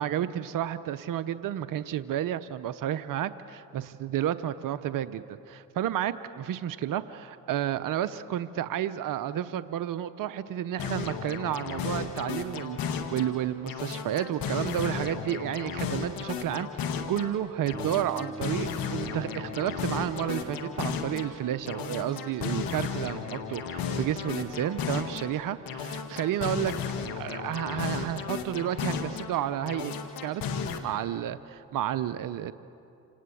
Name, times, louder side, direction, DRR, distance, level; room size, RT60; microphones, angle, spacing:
voice 1, 0.0-26.7 27.2-29.9 30.2-32.5, right 11 dB, 65° right, 14 dB, 0.8 m, -31 dB
sound 1, 10.8-13.3 13.7-17.3 17.7-21.3 21.7-25.3 25.7-29.3 29.7-30.8, left 6 dB, 80° left, 1.8 m, -34 dB
sound 2, 17.7-27.3, right 1 dB, 20° right, 3.0 m, -47 dB
27.0 x 19.0 x 8.4 m, 2.7 s
supercardioid pair, 60°, 35 cm